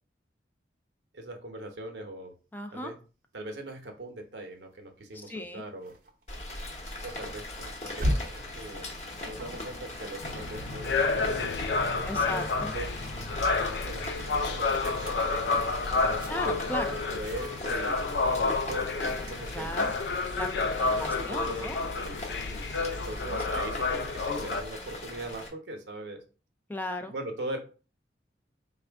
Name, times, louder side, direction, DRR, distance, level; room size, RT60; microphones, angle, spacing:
voice 1, 1.1-2.3 2.7-2.9 3.3-5.9 7.0-8.2 8.5-8.9 9.2-12.9 13.8-16.5 16.9-19.8 20.8-26.2 27.1-27.6, right 1 dB, 75° right, 4 dB, 0.9 m, -41 dB
voice 2, 2.5-2.9 5.1-5.6 12.0-12.7 16.3-16.9 19.5-19.9 20.4-21.9 23.2-23.6 26.7-27.1, left 1 dB, 10° left, 6 dB, 0.3 m, -37 dB
sound 1, 5.1-11.7 12.1-21.9, equal, 50° right, 0.6 m, -41 dB
Rain, 6.3-25.5, left 2 dB, 40° left, 0.9 m, -40 dB
sound 2, 10.2-24.6, left 3 dB, 75° left, 0.4 m, -30 dB
4.2 x 2.4 x 3.4 m, 0.36 s
head